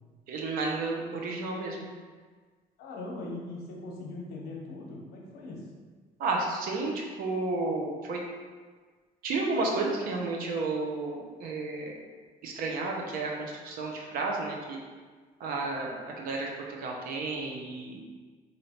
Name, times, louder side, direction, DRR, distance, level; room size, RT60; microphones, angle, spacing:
voice 1, 0.3-1.9 6.2-8.2 9.2-12.0 12.4-14.8 15.4-18.0, right 3 dB, 70° right, 0 dB, 0.7 m, -32 dB
voice 2, 2.8-5.6, left 2 dB, 85° left, -1 dB, 0.8 m, -40 dB
3.2 x 2.6 x 4.2 m, 1.5 s
cardioid pair, 145°, 16 cm